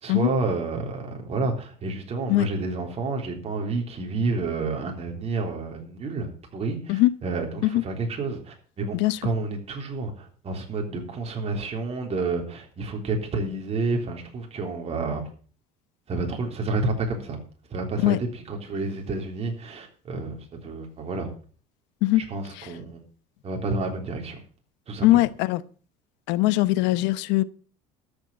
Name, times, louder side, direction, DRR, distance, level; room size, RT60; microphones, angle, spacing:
voice 1, 0.0-15.3 16.1-17.4 17.7-21.3 22.2-23.0 23.4-24.4 24.9-25.1, right 3 dB, 35° right, 3.5 m, -30 dB
voice 2, 25.0-25.6 26.3-27.4, left 17 dB, 75° left, 0.9 m, -21 dB
13.5 x 6.6 x 7.4 m
cardioid pair, 115°, 19 cm